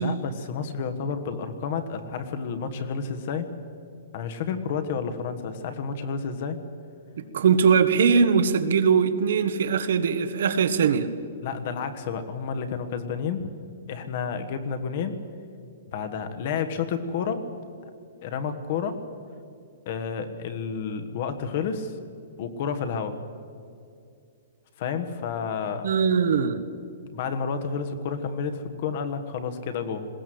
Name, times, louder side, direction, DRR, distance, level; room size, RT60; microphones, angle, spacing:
voice 1, 0.0-3.5 4.1-6.6 11.4-13.5 13.9-15.1 15.9-17.5 18.2-19.0 19.8-22.0 22.4-23.2 24.8-25.9 27.1-30.1, left 6 dB, 40° left, 9 dB, 1.4 m, -30 dB
voice 2, 7.2-11.1 25.8-26.6, right 6 dB, 60° right, 10 dB, 1.3 m, -21 dB
20.5 x 17.0 x 7.8 m, 2.4 s
hypercardioid pair, 175°, 0 cm